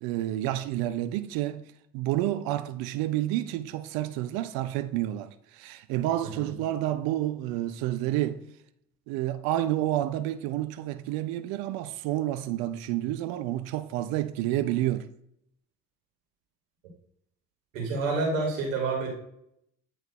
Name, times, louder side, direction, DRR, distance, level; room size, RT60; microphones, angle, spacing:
voice 1, 0.0-1.6 1.9-8.4 9.1-15.1, right 14 dB, 65° right, 0.6 m, -29 dB
voice 2, 17.7-19.1, right 3 dB, 85° right, 2.1 m, -28 dB
8.5 x 3.2 x 4.5 m
hypercardioid pair, 55°, 39 cm